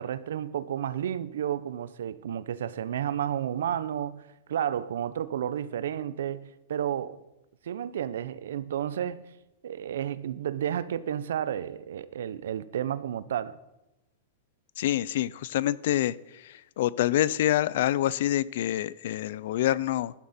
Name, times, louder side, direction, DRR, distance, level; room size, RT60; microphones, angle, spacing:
voice 1, 0.0-4.2 4.5-7.2 7.6-9.2 9.6-13.6, right 10 dB, 80° right, 0.7 m, -31 dB
voice 2, 14.8-16.1 16.8-20.1, left 13 dB, 55° left, 0.4 m, -26 dB
13.5 x 12.0 x 4.3 m
supercardioid pair, 175°, 0 cm